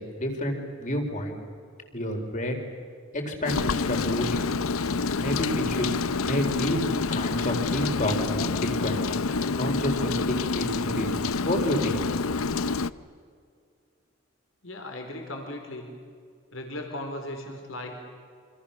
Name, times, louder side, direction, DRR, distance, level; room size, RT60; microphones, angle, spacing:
voice 1, 0.0-1.4 1.9-2.6 3.1-4.4 5.2-6.8 7.1-9.0 9.3-11.1 11.4-12.0, left 1 dB, 35° left, 3 dB, 4.4 m, -29 dB
Rain, 3.5-12.9, left 4 dB, 85° left, 0.7 m, -27 dB
voice 2, 14.6-15.9 16.5-17.9, left 1 dB, 70° left, 4 dB, 4.3 m, -37 dB
28.5 x 26.0 x 7.2 m, 2.2 s
head